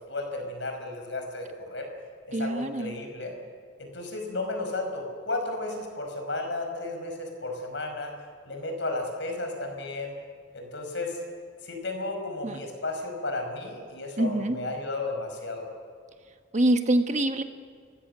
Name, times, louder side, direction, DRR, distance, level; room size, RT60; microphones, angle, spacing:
voice 1, 0.1-1.9 2.3-3.3 3.8-8.1 8.5-10.1 10.5-11.2 11.6-15.7, left 2 dB, 65° left, 4 dB, 5.5 m, -33 dB
voice 2, 2.3-3.0 12.4-12.6 14.2-14.6 16.5-17.4, right 1 dB, 35° right, 7 dB, 1.3 m, -25 dB
30.0 x 16.5 x 6.8 m, 2.1 s
head